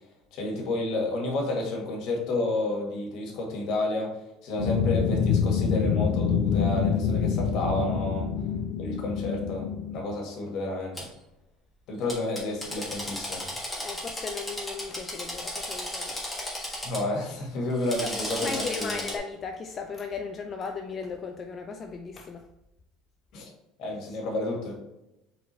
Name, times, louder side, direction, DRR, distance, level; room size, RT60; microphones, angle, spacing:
voice 1, 0.3-4.2 4.4-8.3 8.8-11.0 11.9-13.5 16.8-19.0 23.3-23.5 23.8-24.7, left 2 dB, 60° left, 0 dB, 1.6 m, -30 dB
sound 1, 4.6-10.1, left 7 dB, 75° left, 0.6 m, -26 dB
Drill, 11.0-11.1 12.1-17.0 17.7-19.2, left 1 dB, 5° left, 1.3 m, -35 dB
voice 2, 13.8-16.2 18.4-22.5 24.1-24.2, left 5 dB, 30° left, 5 dB, 0.4 m, -36 dB
4.4 x 3.8 x 3.1 m, 0.93 s
cardioid pair, 125°, 0 cm